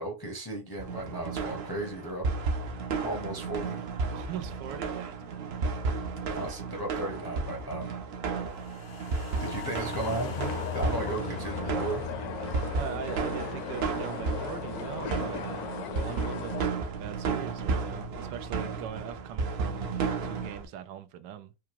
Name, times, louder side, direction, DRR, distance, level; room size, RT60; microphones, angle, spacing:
voice 1, 0.0-2.2 3.0-3.8 6.3-7.9 9.4-12.0, right 1 dB, 25° left, 0.5 m, -35 dB
sound 1, 0.8-20.6, right 4 dB, 65° right, 0.6 m, -33 dB
voice 2, 4.1-5.7 11.2-11.4 12.7-21.5, right 10 dB, 90° right, 1.3 m, -41 dB
sound 2, 8.5-14.9 15.2-15.3, left 6 dB, 85° left, 0.4 m, -41 dB
sound 3, 10.0-16.7, left 8 dB, 70° left, 1.0 m, -38 dB
4.8 x 2.2 x 2.9 m
omnidirectional pair, 1.9 m